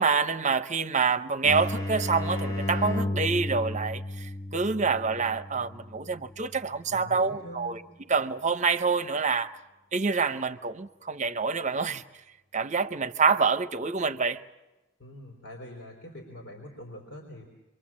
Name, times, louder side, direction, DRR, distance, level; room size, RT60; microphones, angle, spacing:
voice 1, 0.0-7.8 8.1-9.5 9.9-12.0 12.5-14.4, right 5 dB, 40° right, 0.8 m, -27 dB
sound 1, 1.4-6.9, left 1 dB, 20° left, 0.8 m, -33 dB
voice 2, 6.9-7.8 15.0-17.5, left 1 dB, 80° left, 4.0 m, -44 dB
26.5 x 23.5 x 7.5 m
head